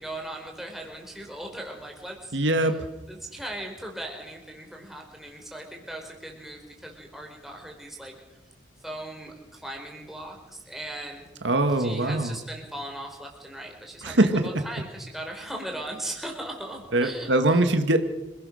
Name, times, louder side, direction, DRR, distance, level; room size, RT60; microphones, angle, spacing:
voice 1, 0.0-2.7 3.1-8.1 8.8-11.3 11.8-17.6, right 1 dB, ahead, 1 dB, 4.1 m, -38 dB
voice 2, 2.3-2.8 11.4-12.4 14.0-14.4 16.9-18.0, right 2 dB, 75° right, 7 dB, 1.8 m, -22 dB
26.5 x 17.0 x 6.5 m, 1.1 s
head